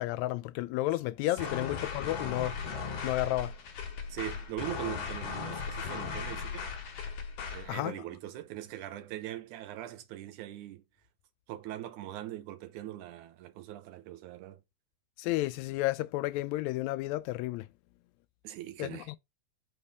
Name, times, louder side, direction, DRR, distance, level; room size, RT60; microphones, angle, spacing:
voice 1, 0.0-2.6 3.0-3.5 7.7-8.0 15.2-17.7 18.8-19.2, left 17 dB, 80° left, 1.8 m, -32 dB
sound 1, 1.4-7.7, left 5 dB, 60° left, 2.0 m, -37 dB
voice 2, 4.1-6.7 7.5-10.8 11.5-14.6 18.4-19.1, right 14 dB, 85° right, 2.2 m, -41 dB
5.7 x 3.3 x 5.2 m
omnidirectional pair, 3.5 m